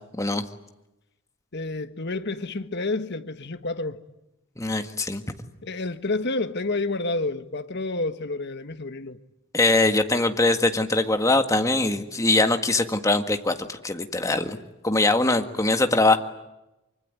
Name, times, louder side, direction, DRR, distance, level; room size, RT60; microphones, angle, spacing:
voice 1, 0.1-0.4 4.6-5.2 9.5-14.6 14.8-16.2, left 2 dB, 15° left, 1.7 m, -22 dB
voice 2, 1.5-4.0 5.6-9.2, left 2 dB, 55° left, 1.5 m, -29 dB
25.0 x 25.0 x 9.7 m
head